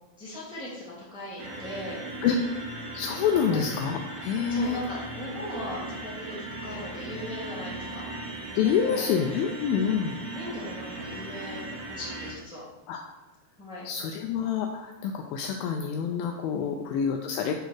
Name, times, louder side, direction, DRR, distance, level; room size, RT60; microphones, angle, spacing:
voice 1, 0.2-2.0 3.4-3.6 4.5-6.3 6.6-8.0 8.6-9.1 9.7-9.9 10.3-11.6 11.9-12.6 13.6-13.8 16.5-16.7, left 1 dB, ahead, -7 dB, 1.5 m, -38 dB
sound 1, 1.4-12.3, right 2 dB, 60° right, 1.7 m, -38 dB
voice 2, 2.6-4.8 8.5-10.1 12.9-13.0 13.8-17.5, left 7 dB, 90° left, 3 dB, 2.1 m, -27 dB
8.2 x 4.0 x 6.4 m, 1.1 s
omnidirectional pair, 4.8 m